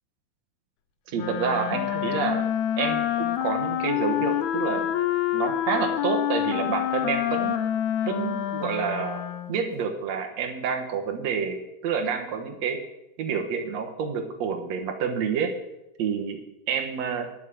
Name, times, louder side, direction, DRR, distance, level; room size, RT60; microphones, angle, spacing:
Wind instrument woodwind instrument, 1.1-9.7, left 11 dB, 85° left, 1.6 m, -27 dB
voice 1, 1.1-2.5 2.8-4.9 5.3-7.6 8.1-12.8 13.2-15.5 16.0-17.3, right 6 dB, 60° right, 3 dB, 2.1 m, -28 dB
10.0 x 7.3 x 8.6 m, 0.88 s
omnidirectional pair, 4.1 m